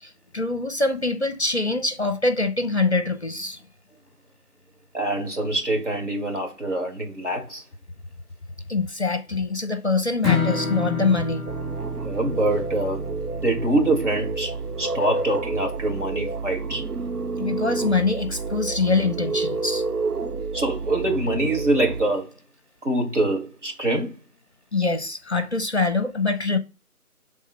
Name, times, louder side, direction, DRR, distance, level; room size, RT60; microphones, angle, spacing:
voice 1, 0.0-3.6 8.7-11.4 17.4-19.8 24.7-26.6, left 3 dB, 45° left, 0.7 m, -24 dB
voice 2, 4.9-7.6 12.0-13.1 13.4-16.9 20.5-22.3 22.8-24.2, right 1 dB, 50° right, 2.0 m, -25 dB
Strum, 10.2-16.5, left 5 dB, ahead, 0.6 m, -31 dB
sound 1, 11.5-22.0, right 4 dB, 80° right, 0.8 m, -29 dB
5.5 x 3.6 x 5.4 m
figure-of-eight pair, 165°, 45 cm